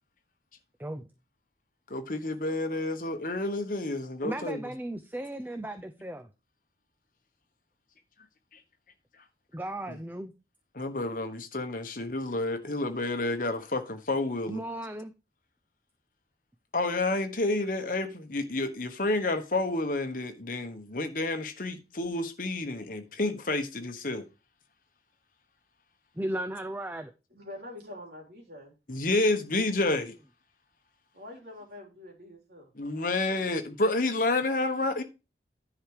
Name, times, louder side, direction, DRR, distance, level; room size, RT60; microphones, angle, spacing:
voice 1, 1.9-4.6 10.7-14.6 16.7-24.2 28.9-30.1 32.8-35.0, left 2 dB, 50° left, 1.2 m, -29 dB
voice 2, 4.2-6.3 9.5-10.3 14.5-15.1 26.2-27.1, right 1 dB, 10° right, 0.5 m, -35 dB
voice 3, 27.3-29.0 31.1-32.7, left 1 dB, 60° right, 3.2 m, -45 dB
10.5 x 5.1 x 4.8 m
head